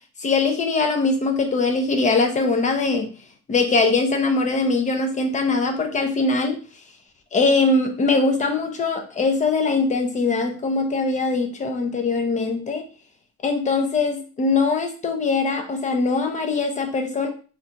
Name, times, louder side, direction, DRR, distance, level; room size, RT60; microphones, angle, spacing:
voice 1, 0.2-3.1 3.5-6.6 7.3-12.8 13.4-17.3, left 3 dB, 25° left, 4 dB, 0.5 m, -22 dB
2.8 x 2.5 x 3.3 m, 0.38 s
cardioid pair, 160°, 29 cm